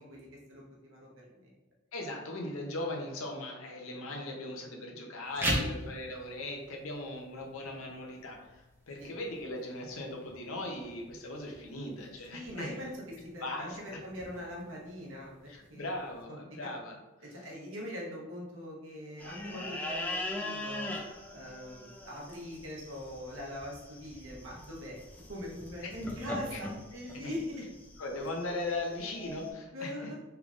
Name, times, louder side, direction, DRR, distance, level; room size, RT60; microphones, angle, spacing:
voice 1, 0.0-1.5 5.4-5.7 9.0-9.1 12.3-15.9 16.3-16.7 17.2-20.9 21.3-25.0 25.3-27.7 28.7-28.8 29.7-30.2, left 1 dB, 65° right, -4 dB, 1.0 m, -42 dB
voice 2, 1.9-12.7 13.4-14.0 15.5-16.9 26.5-26.6 27.2-27.3 28.0-30.1, left 2 dB, 75° left, 1 dB, 0.7 m, -39 dB
sound 1, 5.2-16.2, right 1 dB, 10° right, 0.7 m, -42 dB
sound 2, 19.2-29.5, left 1 dB, 10° left, 0.3 m, -41 dB
3.7 x 3.3 x 2.4 m, 1.1 s
head